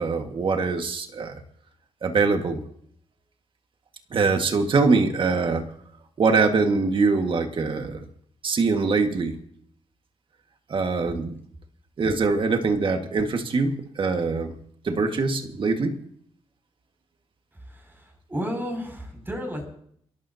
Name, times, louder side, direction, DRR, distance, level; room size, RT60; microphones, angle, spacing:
voice 1, 0.0-1.4 2.0-2.6 4.1-5.7 6.2-8.1 8.4-9.4 10.7-11.4 12.0-14.6 14.8-16.0, right 4 dB, 55° right, 5 dB, 1.8 m, -23 dB
voice 2, 17.7-19.7, equal, 20° right, 2 dB, 6.6 m, -32 dB
29.5 x 12.0 x 2.9 m, 0.63 s
cardioid pair, 75°, 10 cm